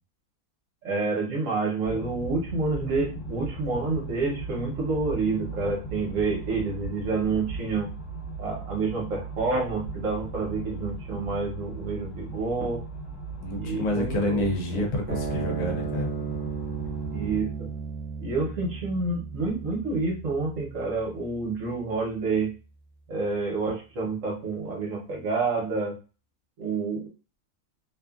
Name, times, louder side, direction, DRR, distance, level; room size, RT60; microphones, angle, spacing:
voice 1, 0.8-7.9 8.4-12.8 13.5-14.9 17.1-17.7 18.2-22.5 23.1-25.9 26.6-27.1, right 3 dB, 60° right, -2 dB, 1.2 m, -28 dB
sound 1, 1.8-17.4, right 3 dB, 50° left, 0.8 m, -37 dB
voice 2, 13.4-16.1, left 1 dB, 75° left, 3 dB, 1.1 m, -28 dB
sound 2, 15.1-21.7, right 5 dB, 10° right, 0.8 m, -35 dB
2.8 x 2.3 x 2.3 m, 0.33 s
omnidirectional pair, 1.7 m